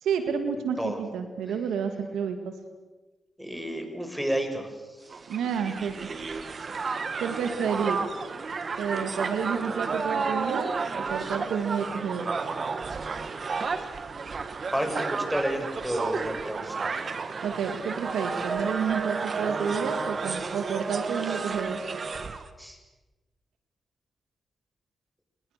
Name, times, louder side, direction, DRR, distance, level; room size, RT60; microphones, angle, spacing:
voice 1, 0.0-2.6 5.3-6.0 7.2-8.0 8.8-10.7 11.1-12.3 17.4-21.9, right 7 dB, 90° right, 8 dB, 2.1 m, -30 dB
voice 2, 3.4-4.7 5.1-5.2 14.7-16.9 22.6-22.8, equal, ahead, 5 dB, 7.0 m, -31 dB
Crowd, 5.1-22.5, right 4 dB, 55° right, 1.9 m, -32 dB
29.5 x 21.0 x 6.8 m, 1.2 s
supercardioid pair, 45°, 0 cm